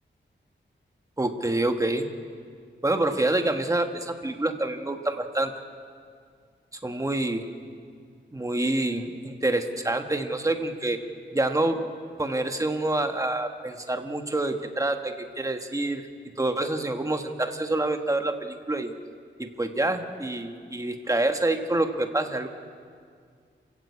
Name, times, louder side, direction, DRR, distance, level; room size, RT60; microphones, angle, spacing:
voice 1, 1.2-2.1 2.8-5.5 6.8-7.5 8.3-11.0 11.3-11.9 12.2-16.0 16.4-18.9 19.4-22.5, right 2 dB, 15° right, 6 dB, 1.4 m, -27 dB
27.5 x 15.0 x 8.5 m, 2.1 s
wide cardioid pair, 150°, 19 cm